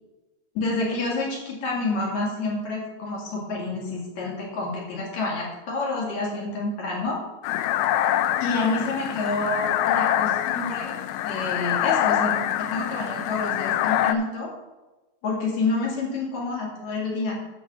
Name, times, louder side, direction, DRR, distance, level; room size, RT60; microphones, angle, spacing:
voice 1, 0.5-7.2 8.4-11.0 11.2-14.5 15.2-17.4, left 3 dB, 50° left, -3 dB, 2.9 m, -28 dB
sound 1, 7.4-14.1, left 12 dB, 90° left, 2.7 m, -25 dB
11.0 x 4.0 x 7.4 m, 1.1 s
omnidirectional pair, 4.7 m